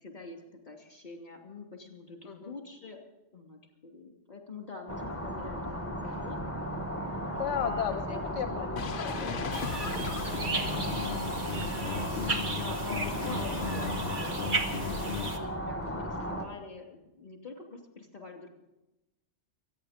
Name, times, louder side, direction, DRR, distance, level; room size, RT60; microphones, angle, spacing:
voice 1, 0.0-3.0 3.3-6.6 6.9-8.2 8.5-8.9 11.0-18.5, left 3 dB, 40° left, 2 dB, 3.0 m, -45 dB
sound 1, 4.9-16.5, equal, 10° left, 1.5 m, -35 dB
voice 2, 7.4-8.0 8.4-10.2 15.2-15.4, left 9 dB, 75° left, 8 dB, 1.1 m, -36 dB
sound 2, 8.8-15.3, left 6 dB, 55° left, 0.7 m, -37 dB
sound 3, 9.5-15.4, right 3 dB, 45° right, 1.5 m, -35 dB
25.0 x 9.7 x 5.1 m, 0.98 s
omnidirectional pair, 1.2 m